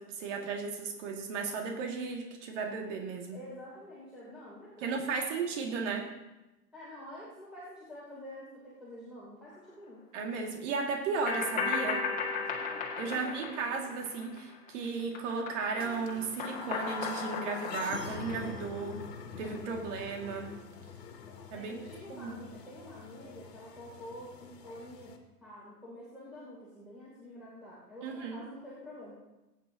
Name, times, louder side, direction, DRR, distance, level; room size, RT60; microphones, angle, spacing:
voice 1, 0.0-3.4 4.8-6.1 10.1-12.1 13.0-19.1 19.4-20.5 21.5-21.8 22.1-22.4 28.0-28.4, right 4 dB, 45° right, 2 dB, 2.2 m, -35 dB
voice 2, 3.3-5.0 6.7-10.0 12.6-13.5 21.5-25.1 25.4-29.2, left 1 dB, ahead, -9 dB, 3.0 m, -48 dB
sound 1, 11.3-14.7 15.0-19.0, left 5 dB, 15° left, 1.9 m, -36 dB
sound 2, 15.8-25.2, left 6 dB, 75° left, 1.9 m, -46 dB
20.0 x 9.3 x 2.8 m, 1.0 s
hypercardioid pair, 130°, 49 cm